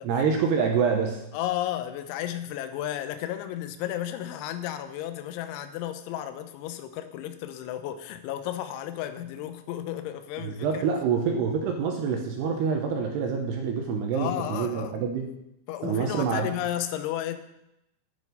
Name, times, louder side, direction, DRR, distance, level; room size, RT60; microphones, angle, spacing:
voice 1, 0.0-1.2 10.4-15.3 15.8-16.5, right 6 dB, 80° right, 2 dB, 2.5 m, -26 dB
voice 2, 1.3-10.8 14.1-15.0 15.7-17.4, left 12 dB, 80° left, 9 dB, 3.0 m, -33 dB
9.5 x 9.0 x 5.5 m, 0.85 s
omnidirectional pair, 5.8 m